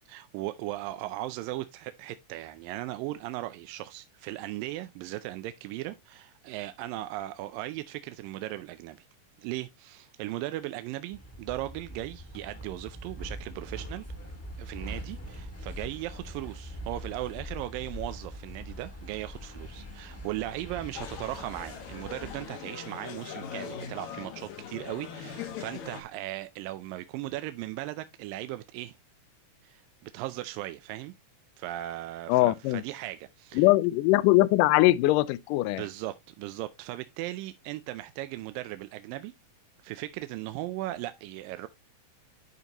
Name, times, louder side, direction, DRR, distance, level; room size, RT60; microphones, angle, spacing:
voice 1, 0.1-9.1 9.4-14.1 14.6-29.0 29.6-31.1 31.6-33.6 35.8-39.3 39.8-41.7, right 16 dB, 85° right, 2.3 m, -37 dB
sound 1, 11.1-22.5, equal, 5° left, 1.2 m, -42 dB
sound 2, 20.9-26.0, left 7 dB, 65° left, 2.4 m, -41 dB
voice 2, 32.3-32.8 33.6-35.8, left 18 dB, 80° left, 2.0 m, -22 dB
11.0 x 5.2 x 2.9 m
omnidirectional pair, 4.0 m